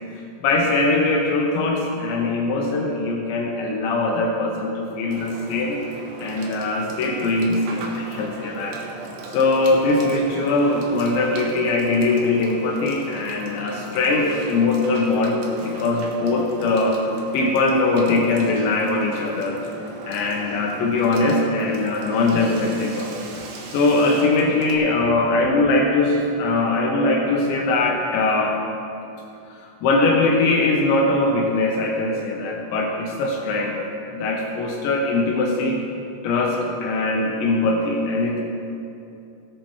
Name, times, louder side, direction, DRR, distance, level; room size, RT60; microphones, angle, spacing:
voice 1, 0.1-5.8 6.2-8.8 9.3-17.0 17.3-19.6 20.1-23.1 23.7-28.6 29.8-33.8 34.1-35.8 36.2-38.4, left 2 dB, 75° left, 0 dB, 2.9 m, -21 dB
Water / Water tap faucet / Sink (filling or washing), 5.1-24.8, right 3 dB, 75° right, 2.3 m, -39 dB
18.0 x 10.5 x 3.2 m, 2.7 s
omnidirectional pair, 5.9 m